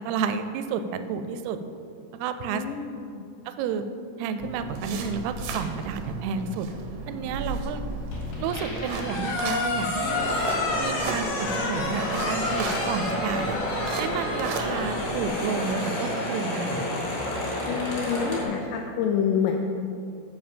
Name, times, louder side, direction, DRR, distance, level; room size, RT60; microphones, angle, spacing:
voice 1, 0.0-1.6 2.1-2.6 3.5-3.9 4.2-6.7 7.1-7.8 8.4-10.3 10.8-13.6 14.0-16.8, right 6 dB, 90° right, 9 dB, 2.5 m, -31 dB
voice 2, 2.5-3.3 17.7-19.6, left 7 dB, 85° left, 2 dB, 1.9 m, -27 dB
sound 1, 4.4-15.3, right 2 dB, 75° right, 2.1 m, -35 dB
sound 2, 8.1-18.4, left 3 dB, 70° left, 3.8 m, -32 dB
sound 3, 10.0-18.4, left 1 dB, 50° left, 2.2 m, -31 dB
7.8 x 5.5 x 7.3 m, 2.5 s
omnidirectional pair, 4.5 m